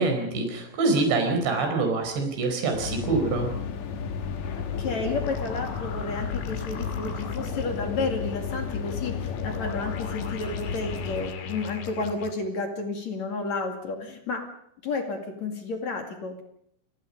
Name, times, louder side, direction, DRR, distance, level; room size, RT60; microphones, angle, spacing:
voice 1, 0.0-3.5, right 3 dB, 60° right, 5 dB, 6.5 m, -25 dB
sound 1, 2.7-11.3, left 6 dB, 85° left, 1.6 m, -34 dB
sound 2, 4.2-12.3, left 7 dB, 65° left, 4.4 m, -37 dB
voice 2, 4.6-14.5 14.8-16.4, left 3 dB, 45° left, 4 dB, 2.8 m, -31 dB
29.5 x 19.5 x 5.4 m, 0.73 s
omnidirectional pair, 5.8 m